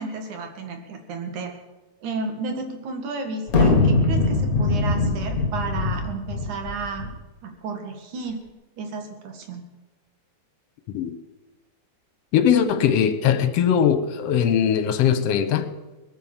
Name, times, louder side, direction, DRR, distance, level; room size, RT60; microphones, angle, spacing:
voice 1, 0.0-1.5 2.0-7.1 7.4-8.4 8.8-9.6, right 4 dB, 75° right, 4 dB, 3.2 m, -32 dB
sound 1, 3.5-7.1, left 3 dB, 35° left, 1.6 m, -21 dB
voice 2, 12.3-15.7, left 8 dB, 65° left, 10 dB, 1.9 m, -20 dB
19.5 x 9.4 x 7.3 m, 1.1 s
omnidirectional pair, 3.5 m